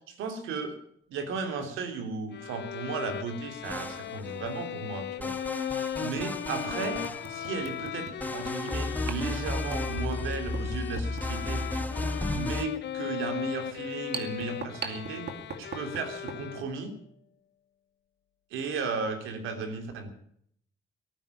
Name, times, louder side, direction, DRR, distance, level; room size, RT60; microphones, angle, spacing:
voice 1, 0.1-0.7 1.1-5.3 6.0-7.0 7.3-11.6 12.3-15.3 15.6-16.9 18.5-20.1, right 4 dB, 85° right, 6 dB, 3.2 m, -35 dB
Bowed string instrument, 2.3-17.0, left 11 dB, 60° left, 0.8 m, -38 dB
sound 1, 3.6-4.5 5.2-7.7 8.2-12.7, left 2 dB, 10° left, 1.3 m, -34 dB
sound 2, 3.6-3.8 5.3-5.4 6.0-6.1 6.6-16.5, right 4 dB, 55° right, 2.4 m, -42 dB
17.5 x 9.9 x 8.3 m, 0.66 s
cardioid pair, 90°, 20 cm